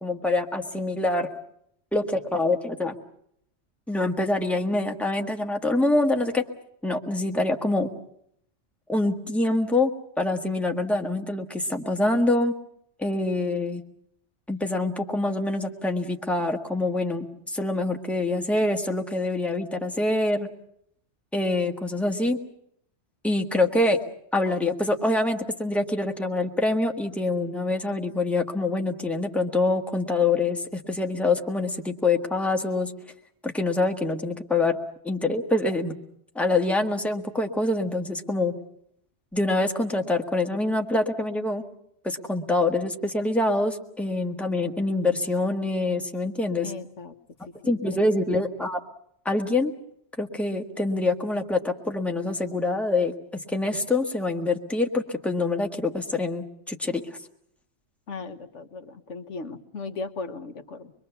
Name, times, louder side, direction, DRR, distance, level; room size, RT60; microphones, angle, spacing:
voice 1, 0.0-1.3 1.9-2.9 3.9-6.4 6.8-7.9 8.9-9.9 10.2-12.5 13.0-13.8 14.5-20.5 21.3-22.4 23.2-24.0 24.3-32.9 33.4-34.8 35.0-35.9 36.3-38.5 39.3-41.6 42.0-46.7 47.7-48.8 49.2-49.7 50.2-53.1 53.5-57.0, left 2 dB, ahead, 3 dB, 1.6 m, -25 dB
voice 2, 46.6-47.1 47.6-48.0 58.1-60.9, left 4 dB, 85° left, 7 dB, 1.6 m, -37 dB
24.5 x 22.5 x 7.0 m, 0.70 s
omnidirectional pair, 1.2 m